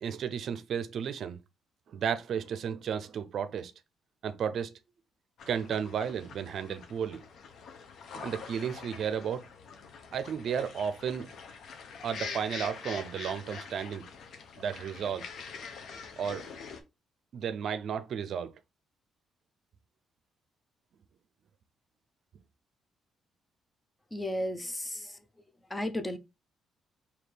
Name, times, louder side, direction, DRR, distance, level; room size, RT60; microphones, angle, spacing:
voice 1, 0.0-1.4 1.9-3.7 4.2-4.7 5.5-7.2 8.1-9.4 10.1-11.3 12.0-14.1 14.6-15.2 16.2-16.4 17.3-18.5, right 7 dB, 65° right, 0.5 m, -33 dB
sound 1, 5.4-16.8, left 5 dB, 70° left, 0.8 m, -45 dB
voice 2, 24.1-25.2 25.7-26.2, left 1 dB, 15° left, 0.6 m, -34 dB
4.2 x 2.8 x 3.3 m
cardioid pair, 90°, 0 cm